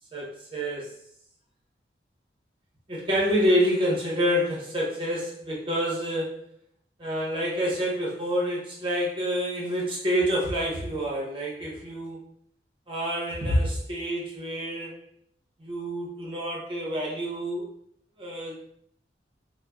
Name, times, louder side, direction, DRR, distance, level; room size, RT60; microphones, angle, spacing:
voice 1, 0.1-0.9 2.9-6.4 7.0-12.2 12.9-15.1 15.6-17.6 18.2-18.6, equal, 30° right, -3 dB, 0.9 m, -27 dB
4.9 x 2.1 x 2.3 m, 0.67 s
head